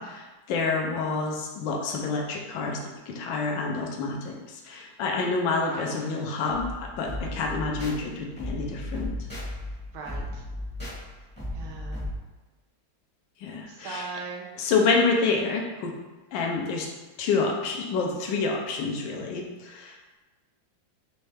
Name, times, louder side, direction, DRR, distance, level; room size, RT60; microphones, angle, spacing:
voice 1, 0.0-2.8 3.1-9.1 13.4-14.0 14.6-16.0 16.3-16.9 17.2-20.2, left 4 dB, 70° left, 1 dB, 1.3 m, -28 dB
sound 1, 6.5-12.2, left 1 dB, 5° left, 0.9 m, -36 dB
voice 2, 9.9-10.4 11.5-12.1 13.7-14.5, right 4 dB, 85° right, 0 dB, 1.5 m, -39 dB
4.3 x 3.2 x 3.3 m, 1.2 s
omnidirectional pair, 2.2 m